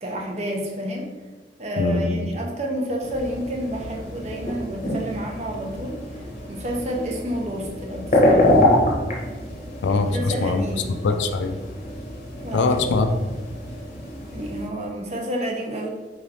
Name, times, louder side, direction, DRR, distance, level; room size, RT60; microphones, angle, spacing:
voice 1, 0.0-1.1 1.6-6.0 6.5-8.7 9.9-10.9 12.4-12.8 14.3-15.9, equal, 40° right, 0 dB, 0.6 m, -29 dB
voice 2, 1.8-2.3 9.8-10.6 11.0-11.6 12.5-13.3, left 3 dB, 80° left, 7 dB, 0.4 m, -22 dB
sound 1, 3.0-14.7, left 1 dB, 40° left, 0.8 m, -26 dB
3.9 x 3.2 x 2.7 m, 1.3 s
head